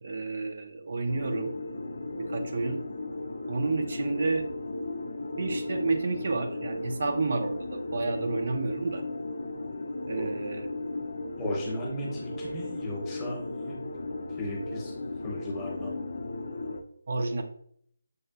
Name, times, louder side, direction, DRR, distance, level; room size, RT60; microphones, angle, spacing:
voice 1, 0.0-1.5 2.2-2.8 3.5-4.5 5.3-9.0 10.1-10.7 17.1-17.4, right 3 dB, 45° right, 5 dB, 0.4 m, -30 dB
sound 1, 1.1-16.8, left 2 dB, 60° left, 0.4 m, -36 dB
voice 2, 11.4-13.4 13.7-13.8 14.3-14.9 15.2-16.0, left 1 dB, 10° left, -3 dB, 0.8 m, -35 dB
6.5 x 2.3 x 2.3 m, 0.66 s
hypercardioid pair, 170°, 0 cm